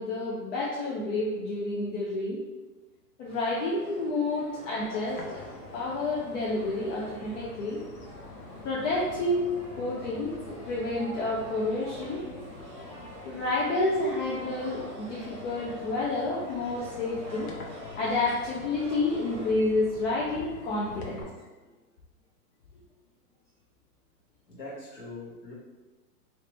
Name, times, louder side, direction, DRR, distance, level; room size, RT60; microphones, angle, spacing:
voice 1, 0.0-2.4 3.2-7.8 8.6-9.5 9.8-12.2 13.2-17.5 18.0-21.2, left 2 dB, 50° left, -5 dB, 0.8 m, -29 dB
sound 1, 3.2-19.5, equal, 15° right, 1.2 m, -46 dB
sound 2, 5.1-21.2, left 3 dB, 70° left, 1.0 m, -47 dB
voice 2, 24.5-25.5, left 2 dB, 20° left, -8 dB, 1.4 m, -43 dB
3.3 x 2.8 x 3.0 m, 1.2 s
hypercardioid pair, 135°, 48 cm